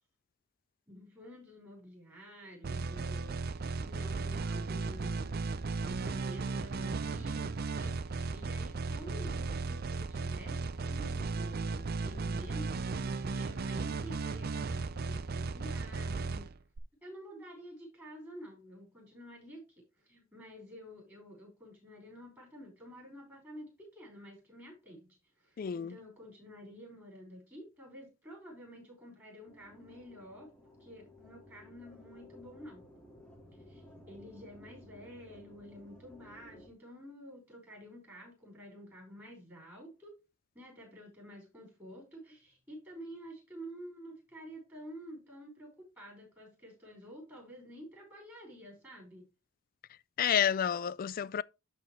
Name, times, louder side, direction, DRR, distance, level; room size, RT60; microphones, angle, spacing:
voice 1, 0.9-5.4 5.8-16.5 17.0-19.7 20.0-30.5 30.8-32.8 33.7-40.1 40.5-49.3, equal, 10° right, 5.2 m, -50 dB
sound 1, 2.6-16.8, right 4 dB, 45° right, 0.5 m, -36 dB
voice 2, 25.6-25.9 50.2-51.4, left 8 dB, 40° left, 0.3 m, -30 dB
sound 2, 29.5-36.7, left 1 dB, 5° left, 2.0 m, -56 dB
12.0 x 4.4 x 3.2 m
head